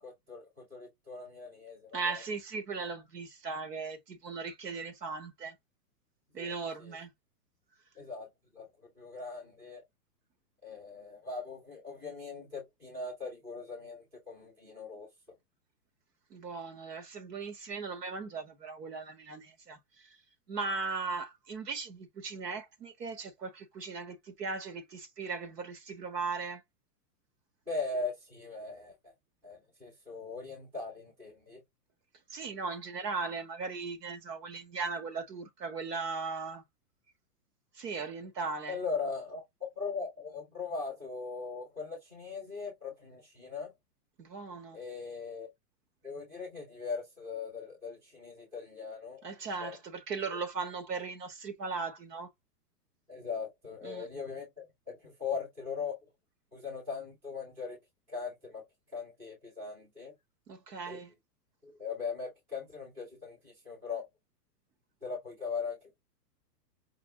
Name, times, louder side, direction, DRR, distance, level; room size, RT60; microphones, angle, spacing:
voice 1, 0.0-2.2 6.3-6.9 8.0-8.3 8.5-8.7 9.0-9.8 10.6-15.1 27.7-29.1 29.4-31.6 38.7-39.4 39.8-43.7 44.7-45.5 46.0-49.3 49.6-49.8 53.1-55.9 56.5-57.8 58.1-58.6 58.9-60.1 60.9-61.0 61.6-64.1 65.0-66.0, left 4 dB, 5° right, 0.6 m, -40 dB
voice 2, 1.9-5.6 6.3-7.1 16.3-20.2 20.5-26.6 32.3-36.6 37.8-38.8 44.2-44.8 49.2-52.3 53.8-54.1 60.5-61.1, right 4 dB, 80° right, 1.8 m, -38 dB
4.9 x 2.8 x 2.7 m
hypercardioid pair, 175°, 48 cm